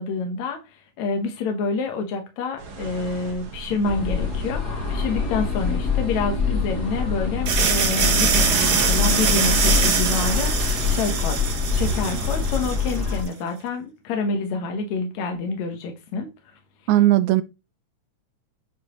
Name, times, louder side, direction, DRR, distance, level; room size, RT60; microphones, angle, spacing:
voice 1, 0.0-4.6 4.9-16.3, left 4 dB, 70° left, 2.5 m, -28 dB
sound 1, 2.6-10.0, right 4 dB, 50° right, 2.0 m, -38 dB
sound 2, 3.8-13.2, left 5 dB, 35° left, 2.7 m, -25 dB
sound 3, 7.5-13.2, right 6 dB, 65° right, 1.0 m, -23 dB
voice 2, 16.9-17.4, right 15 dB, 85° right, 1.9 m, -17 dB
11.0 x 5.3 x 3.0 m
omnidirectional pair, 3.4 m